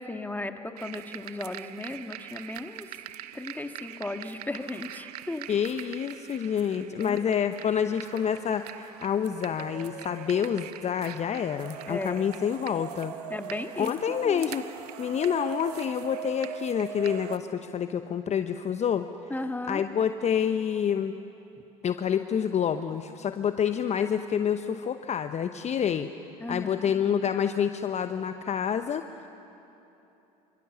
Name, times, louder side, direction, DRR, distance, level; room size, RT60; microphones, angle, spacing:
voice 1, 0.0-2.9 3.3-5.5 6.7-7.3 11.9-12.2 13.3-13.9 14.2-14.4 19.3-19.8 26.4-26.9, left 2 dB, 10° left, 7 dB, 1.7 m, -35 dB
sound 1, 0.8-17.4, right 12 dB, 75° right, 0.9 m, -42 dB
voice 2, 5.5-13.2 13.8-14.7 15.0-19.1 19.7-21.1 21.8-26.1 26.5-29.3, left 8 dB, 35° left, 9 dB, 0.9 m, -28 dB
27.0 x 25.5 x 7.1 m, 3.0 s
hypercardioid pair, 70°, 20 cm